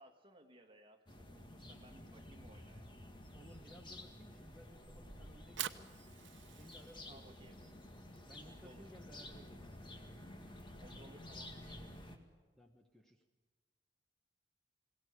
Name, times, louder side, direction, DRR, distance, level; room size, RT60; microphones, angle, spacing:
voice 1, 0.0-2.9 7.1-7.6 8.4-8.9 10.8-11.9, right 1 dB, 30° right, 4 dB, 2.1 m, -61 dB
sound 1, 1.1-12.2, left 1 dB, 25° left, 2.1 m, -52 dB
voice 2, 3.3-5.9 6.5-7.2 8.2-9.9 12.5-13.2, equal, 5° left, 3 dB, 1.3 m, -59 dB
Fire, 5.3-11.5, right 10 dB, 90° right, 0.9 m, -50 dB
22.0 x 17.5 x 9.9 m, 1.3 s
head